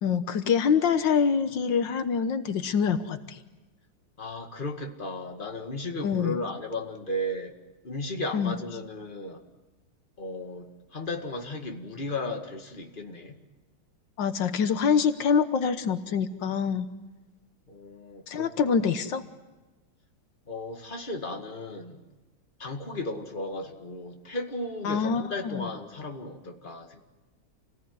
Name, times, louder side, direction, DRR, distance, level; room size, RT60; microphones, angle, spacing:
voice 1, 0.0-3.4 6.0-6.4 8.3-8.6 14.2-16.9 18.3-19.2 24.8-25.7, left 6 dB, 85° left, 9 dB, 1.8 m, -25 dB
voice 2, 4.2-7.6 7.8-9.4 10.2-13.4 17.7-18.8 20.5-22.0 22.6-27.0, left 1 dB, 25° left, 3 dB, 2.2 m, -35 dB
28.0 x 18.5 x 9.4 m, 1.1 s
omnidirectional pair, 2.0 m